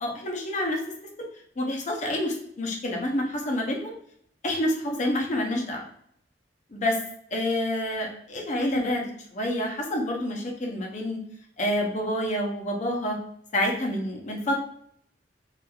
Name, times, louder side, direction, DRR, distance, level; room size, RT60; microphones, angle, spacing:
voice 1, 0.0-0.8 1.6-3.9 4.4-5.8 6.7-7.0 7.3-9.0 9.3-11.2 11.6-13.2 13.5-14.6, left 1 dB, 45° left, 0 dB, 0.6 m, -28 dB
2.9 x 2.4 x 2.3 m, 0.67 s
head